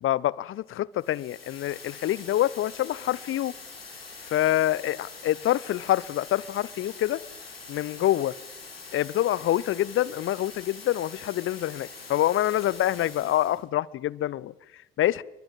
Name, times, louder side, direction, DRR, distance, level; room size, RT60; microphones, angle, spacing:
voice 1, 0.0-3.5 4.3-7.2 7.7-8.3 8.9-15.2, left 13 dB, 45° left, 23 dB, 0.9 m, -26 dB
sound 1, 1.0-13.6, left 4 dB, 85° left, 3.8 m, -44 dB
30.0 x 22.5 x 7.4 m, 0.90 s
figure-of-eight pair, 50°, 29 cm